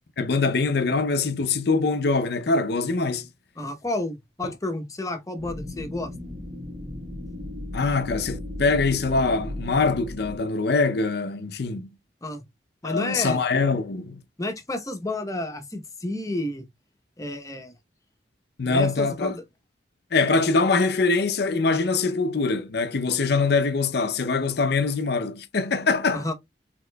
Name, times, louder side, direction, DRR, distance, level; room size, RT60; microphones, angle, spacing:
voice 1, 0.2-3.3 4.4-4.5 7.7-11.9 12.8-14.2 18.6-19.4 20.1-26.2, left 4 dB, 65° left, 0.6 m, -23 dB
voice 2, 3.6-6.1 12.2-12.4 12.8-13.4 14.4-16.7 17.2-17.7 18.6-19.4 26.1-26.3, left 1 dB, 20° left, 0.9 m, -31 dB
sound 1, 5.4-10.4, left 1 dB, 80° right, 2.0 m, -36 dB
4.9 x 3.6 x 2.2 m
head